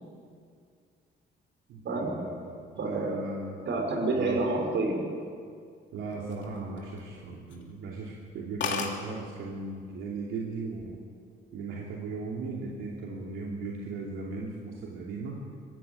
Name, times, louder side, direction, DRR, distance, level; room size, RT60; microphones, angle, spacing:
voice 1, 1.7-3.6 4.1-4.4 5.9-11.0 11.5-15.4, right 3 dB, 90° right, -2 dB, 2.8 m, -37 dB
voice 2, 2.8-3.2 3.7-5.0, right 2 dB, 65° right, 2 dB, 5.4 m, -28 dB
sound 1, 6.1-7.1 7.5-7.7 8.1-8.2 8.3-8.4 8.6-9.0 9.9-10.2 10.5-11.0, left 6 dB, 65° left, 3.2 m, -34 dB
22.0 x 15.5 x 9.3 m, 2.2 s
cardioid pair, 90°, 20 cm